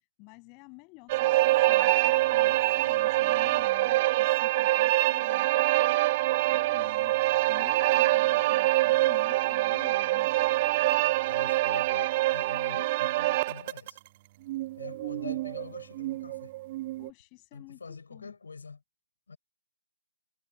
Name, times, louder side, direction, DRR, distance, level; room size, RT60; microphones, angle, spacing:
voice 1, 0.2-6.0 6.5-7.2 7.5-10.3 17.0-18.3, left 33 dB, 20° left, 7.0 m, -51 dB
sound 1, 1.1-14.0 14.5-17.1, right 18 dB, 25° right, 0.6 m, -25 dB
voice 2, 2.4-2.7 6.7-7.4 11.3-14.0 14.8-16.5 17.5-18.8 19.3-19.4, left 4 dB, 60° left, 5.3 m, -45 dB
figure-of-eight pair, 145°, 0 cm